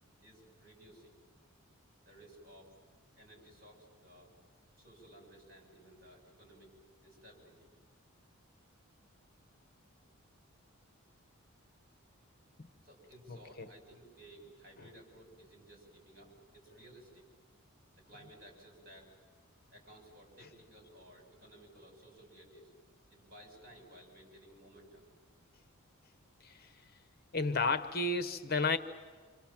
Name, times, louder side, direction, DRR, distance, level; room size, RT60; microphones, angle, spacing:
voice 1, 0.2-1.2 2.0-2.8 3.2-4.3 4.8-6.7 7.0-7.7 12.8-17.3 18.0-19.2 19.7-22.7 23.1-25.1, right 1 dB, 40° right, 1 dB, 7.3 m, -57 dB
voice 2, 27.3-28.8, left 3 dB, 45° left, 10 dB, 1.0 m, -31 dB
28.0 x 27.0 x 7.4 m, 1.5 s
head